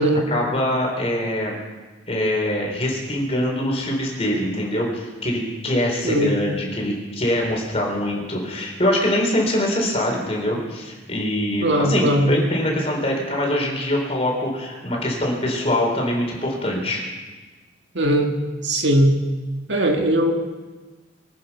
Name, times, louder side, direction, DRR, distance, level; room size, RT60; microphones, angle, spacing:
voice 1, 0.3-1.6 2.1-17.0, left 1 dB, 30° left, -1 dB, 4.0 m, -23 dB
voice 2, 11.6-12.3 17.9-18.3 18.6-19.1 19.7-20.3, right 1 dB, 70° right, 3 dB, 1.8 m, -19 dB
24.5 x 9.4 x 5.7 m, 1.3 s
head